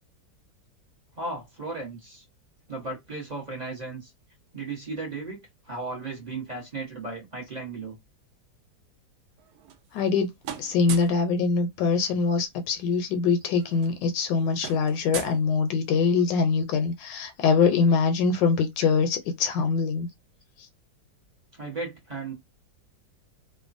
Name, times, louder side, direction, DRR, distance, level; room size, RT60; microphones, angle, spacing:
voice 1, 1.2-2.2 2.7-4.1 4.5-8.0 18.8-18.9 21.5-22.3, right 3 dB, 35° right, 0.7 m, -35 dB
sound 1, 9.4-10.2 10.4-11.2 12.6-12.7 13.0-13.2 13.4-16.1, right 8 dB, 70° right, 1.0 m, -40 dB
voice 2, 9.9-10.3 10.6-20.1, left 5 dB, 80° left, 1.2 m, -23 dB
3.0 x 2.2 x 2.5 m
omnidirectional pair, 2.0 m